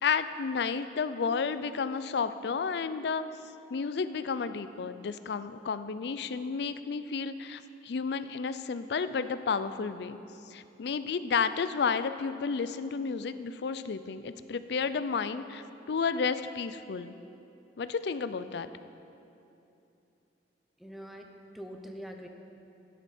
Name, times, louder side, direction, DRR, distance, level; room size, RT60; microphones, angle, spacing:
voice 1, 0.0-3.2 3.7-10.2 10.5-17.1 17.8-18.7, left 5 dB, 65° left, 12 dB, 0.4 m, -32 dB
voice 2, 20.8-22.3, equal, ahead, 3 dB, 0.7 m, -44 dB
12.5 x 10.0 x 4.3 m, 2.8 s
head